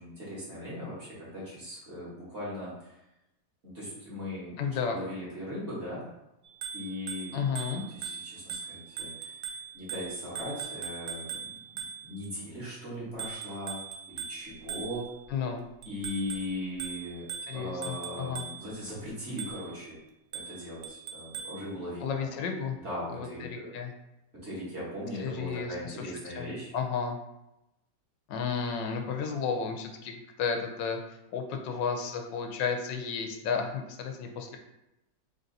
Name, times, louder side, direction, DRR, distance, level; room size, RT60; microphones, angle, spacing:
voice 1, 0.0-2.9 3.6-4.6 4.9-6.1 6.7-7.4 7.7-9.3 9.7-11.4 11.7-15.1 15.8-20.0 20.3-22.3 22.8-23.7 24.4-26.7, left 1 dB, 40° right, -7 dB, 1.6 m, -39 dB
voice 2, 4.6-5.0 7.3-7.8 15.3-15.6 17.5-18.4 22.0-22.8 23.1-23.9 25.2-26.1 26.3-27.2 28.3-31.0 31.3-34.6, left 6 dB, 90° left, 4 dB, 1.3 m, -33 dB
Bicycle bell, 6.5-12.3 13.2-15.3 15.8-18.8 19.4-19.8 20.3-21.7, right 7 dB, 70° right, 0.9 m, -40 dB
3.7 x 2.7 x 3.9 m, 0.89 s
omnidirectional pair, 1.9 m